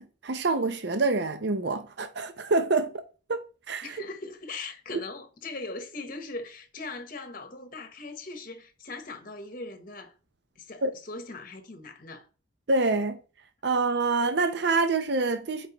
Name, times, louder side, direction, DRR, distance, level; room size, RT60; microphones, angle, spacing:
voice 1, 0.0-2.9 3.3-3.4 3.7-3.9 10.8-10.9 12.7-13.2 13.6-15.7, right 3 dB, 55° right, 0.6 m, -26 dB
voice 2, 3.8-10.1 10.6-12.3, left 3 dB, 45° left, 0.9 m, -40 dB
10.5 x 4.7 x 2.9 m
head